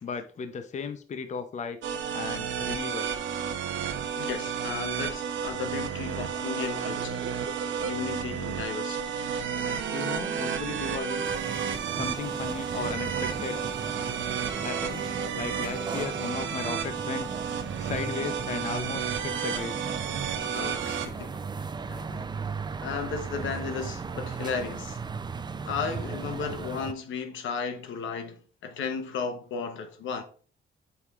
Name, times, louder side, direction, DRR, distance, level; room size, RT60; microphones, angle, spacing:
voice 1, 0.0-1.8 2.1-3.1 9.9-11.3 11.9-13.6 14.6-17.3 17.8-19.7, left 5 dB, 35° left, 0.6 m, -36 dB
sound 1, 1.8-21.1, right 7 dB, 75° right, 0.7 m, -32 dB
voice 2, 4.2-7.3 7.8-9.3 20.5-22.3 22.8-25.0 25.6-30.2, left 5 dB, 75° left, 0.9 m, -35 dB
sound 2, 11.2-26.9, right 5 dB, 20° right, 0.4 m, -37 dB
8.1 x 4.9 x 2.4 m
cardioid pair, 90°, 20 cm